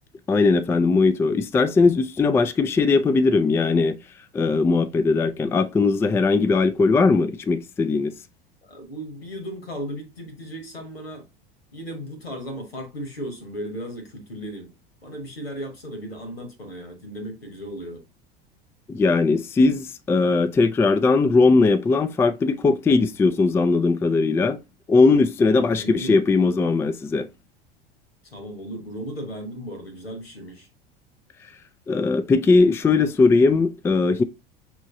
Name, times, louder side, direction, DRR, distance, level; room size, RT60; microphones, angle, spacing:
voice 1, 0.3-4.0 4.3-8.1 18.9-24.6 24.9-27.3 31.9-34.2, left 3 dB, 10° left, 0.3 m, -19 dB
voice 2, 8.6-11.2 11.7-14.7 15.0-18.0 25.4-26.1 28.2-30.7, equal, 90° left, 1.4 m, -36 dB
6.1 x 3.1 x 2.6 m
figure-of-eight pair, 80°, 29 cm